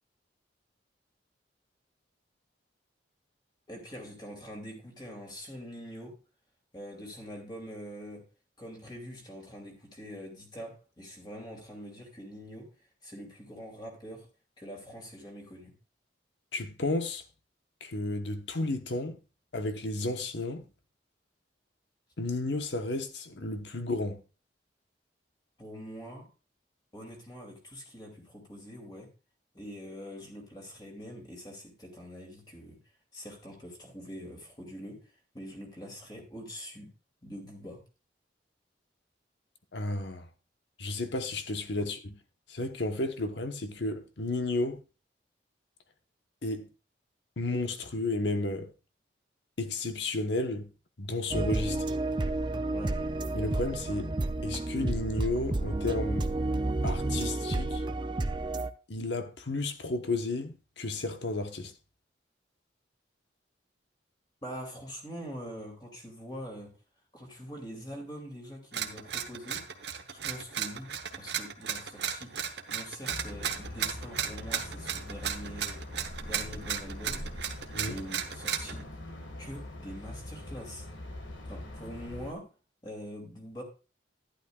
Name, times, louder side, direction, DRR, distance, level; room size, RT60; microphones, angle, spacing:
voice 1, 3.7-6.2 6.7-8.2 8.6-12.7 13.0-14.3 14.6-15.7 25.6-26.3 26.9-29.1 29.5-32.8 33.1-35.1 35.3-36.9 37.2-37.8 41.8-41.9 52.7-53.0 64.4-66.7 67.1-69.7 70.1-75.9 76.2-77.3 77.8-78.9 79.4-80.9 81.5-82.5 82.8-83.6, equal, 25° left, 2.6 m, -44 dB
voice 2, 16.5-17.2 17.8-19.2 19.5-20.6 22.2-24.2 39.7-40.3 40.8-42.1 42.5-44.8 46.4-46.7 47.4-48.7 49.6-50.7 51.0-51.9 53.3-54.1 54.4-56.3 56.8-57.8 58.9-61.7 77.7-78.0, left 2 dB, 75° left, 1.1 m, -32 dB
sound 1, 51.3-58.7, right 2 dB, 25° right, 0.4 m, -31 dB
sound 2, 68.7-78.8, right 8 dB, 70° right, 1.0 m, -35 dB
sound 3, 73.1-82.3, left 1 dB, 90° left, 1.7 m, -43 dB
11.5 x 10.5 x 2.4 m
head